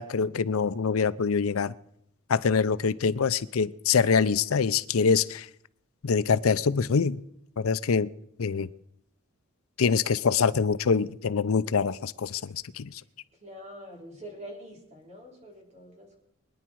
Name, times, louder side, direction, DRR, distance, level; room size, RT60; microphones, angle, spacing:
voice 1, 0.0-1.7 2.3-5.5 6.0-7.2 7.6-8.1 8.4-8.7 9.8-12.9, left 5 dB, 85° left, 0.6 m, -25 dB
voice 2, 13.4-16.2, equal, 35° right, 4.1 m, -45 dB
23.5 x 10.0 x 4.7 m
head